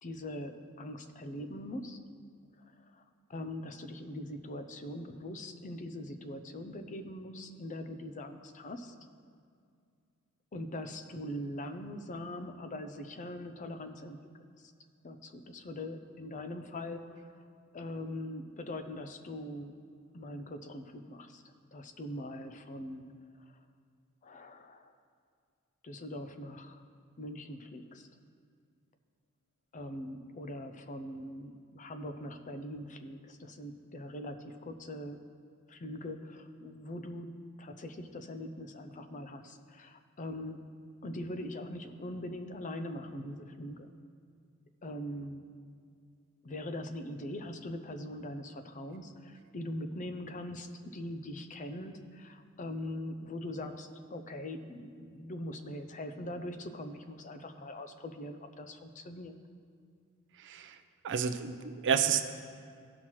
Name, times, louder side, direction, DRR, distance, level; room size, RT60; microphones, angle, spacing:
voice 1, 0.0-2.1 2.6-3.0 3.3-8.9 10.5-14.3 14.6-14.7 15.0-17.4 17.7-19.8 20.1-23.1 23.5-23.6 24.2-24.9 25.8-26.8 27.2-28.1 29.7-35.2 35.7-37.3 37.6-40.7 41.0-43.9 44.8-45.5 46.4-59.3, left 1 dB, 35° left, 8 dB, 0.5 m, -42 dB
voice 2, 60.4-60.8 61.0-62.2, right 7 dB, 55° right, 8 dB, 0.5 m, -30 dB
15.5 x 5.7 x 3.1 m, 2.3 s
head